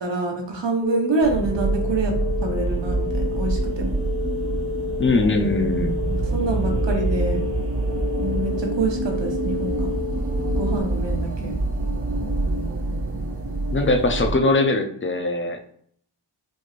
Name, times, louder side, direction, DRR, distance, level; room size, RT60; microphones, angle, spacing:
voice 1, 0.0-2.1 2.4-4.0 6.1-7.4 8.2-9.9 10.6-11.5, right 3 dB, 60° right, 2 dB, 1.0 m, -26 dB
sound 1, 0.8-10.8, left 4 dB, 10° left, 1.5 m, -31 dB
sound 2, 1.2-14.3, right 2 dB, 30° right, 0.5 m, -26 dB
voice 2, 5.0-6.0 13.7-15.7, left 2 dB, 25° left, 4 dB, 0.4 m, -21 dB
4.4 x 3.0 x 2.4 m, 0.64 s
wide cardioid pair, 95°, 50 cm